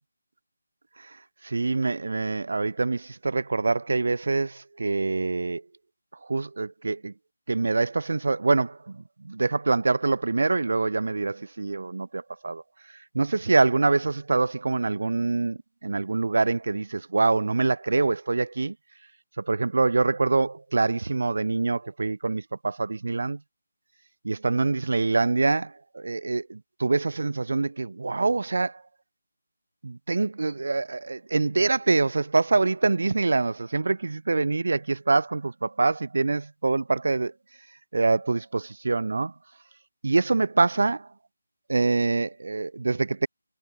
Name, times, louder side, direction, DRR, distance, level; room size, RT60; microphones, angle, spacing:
voice 1, 1.4-5.6 6.3-7.1 7.5-8.8 9.3-12.6 13.1-18.7 19.4-23.4 24.2-28.7 29.8-37.3 37.9-39.3 40.0-41.1 41.7-43.3, right 3 dB, 65° right, 1.3 m, -25 dB
figure-of-eight pair, 165°, 0 cm